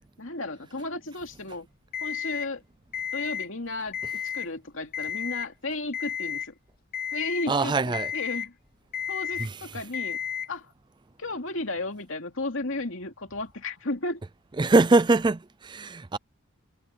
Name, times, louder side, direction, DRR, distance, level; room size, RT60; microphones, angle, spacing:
voice 1, 0.2-1.7 2.0-2.6 3.1-6.5 7.1-8.5 9.1-10.2 10.5-10.7 11.2-14.2, left 2 dB, 60° left, 2.8 m, -34 dB
Alarm, 1.9-2.5 2.9-3.5 3.9-4.5 4.9-5.5 5.9-6.5 6.9-7.5 7.9-8.5 8.9-9.5 9.9-10.5, left 8 dB, 40° left, 0.7 m, -32 dB
voice 2, 7.5-8.1 9.4-9.8 14.6-16.2, right 3 dB, 20° right, 0.4 m, -23 dB
head